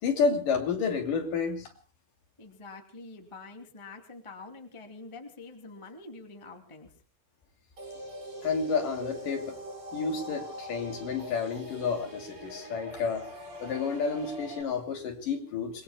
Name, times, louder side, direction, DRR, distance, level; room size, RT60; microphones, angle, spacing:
voice 1, 0.0-1.7 8.4-9.6 9.9-13.3 13.6-15.8, left 5 dB, 50° left, 4 dB, 3.7 m, -30 dB
voice 2, 2.4-6.9, left 3 dB, 15° left, 4 dB, 1.1 m, -46 dB
sound 1, 7.8-14.6, equal, 20° right, 4.6 m, -42 dB
28.0 x 22.0 x 2.2 m, 0.36 s
omnidirectional pair, 5.6 m